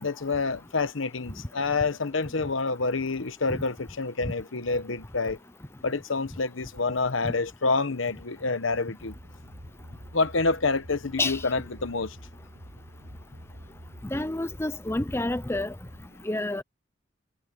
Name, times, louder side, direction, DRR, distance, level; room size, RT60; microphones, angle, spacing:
voice 1, 0.0-5.4 5.8-9.1 10.1-12.2, left 3 dB, 80° left, 1.1 m, -28 dB
sound 1, 9.0-16.1, equal, 65° right, 6.7 m, -47 dB
voice 2, 14.1-15.7 16.2-16.6, left 2 dB, 15° left, 0.7 m, -28 dB
head